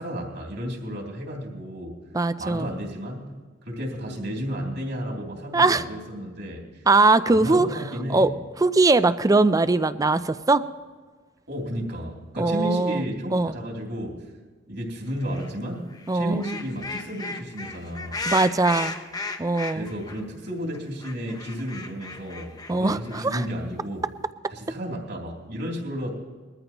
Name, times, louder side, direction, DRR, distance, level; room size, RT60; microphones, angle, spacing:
voice 1, 0.0-2.0 2.4-3.3 3.6-6.8 7.3-8.3 11.5-14.2 14.7-15.8 16.1-18.2 19.7-24.1 24.5-26.1, equal, 60° right, -1 dB, 3.0 m, -32 dB
voice 2, 2.1-2.7 5.5-5.8 6.9-7.7 8.1-8.3 8.6-10.6 12.4-13.0 13.3-13.5 16.1-16.4 18.3-19.0 19.4-19.9 22.7-23.4, right 3 dB, 20° right, 14 dB, 0.4 m, -20 dB
sound 1, 15.3-15.5 15.9-20.2 20.5-20.6 20.7-23.6, left 3 dB, 20° left, 0.9 m, -35 dB
21.5 x 14.0 x 3.0 m, 1.4 s
head